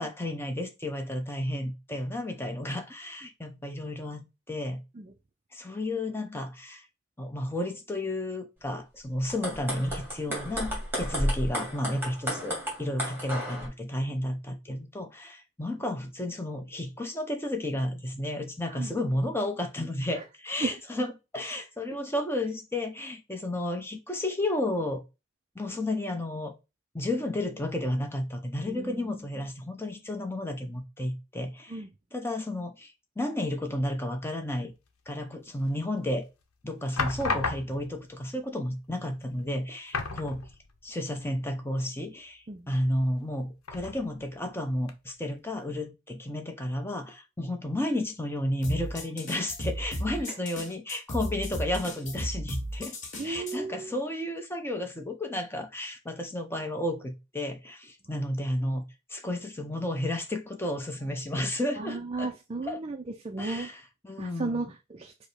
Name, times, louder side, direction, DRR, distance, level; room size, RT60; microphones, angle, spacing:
voice 1, 0.0-4.8 5.5-6.9 7.2-25.0 25.6-26.5 26.9-31.8 32.1-34.7 35.1-36.3 36.6-40.5 40.8-52.9 53.2-58.8 59.1-62.3 62.6-62.8 63.4-64.7, left 1 dB, 10° left, 0.6 m, -32 dB
sound 1, 9.2-13.7, equal, 10° right, 1.8 m, -32 dB
voice 2, 28.7-29.2 31.7-31.9 42.5-42.7 50.3-50.4 53.2-53.9 61.8-63.7 64.2-65.3, right 3 dB, 25° right, 0.3 m, -35 dB
sound 2, 35.7-36.2 37.0-38.0 39.0-39.1 39.4-39.5 39.9-40.9 41.2-41.3 43.6-44.3 44.9-45.0, left 4 dB, 75° left, 0.8 m, -33 dB
sound 3, 48.6-53.6, equal, 35° left, 1.2 m, -35 dB
5.0 x 2.1 x 4.8 m
head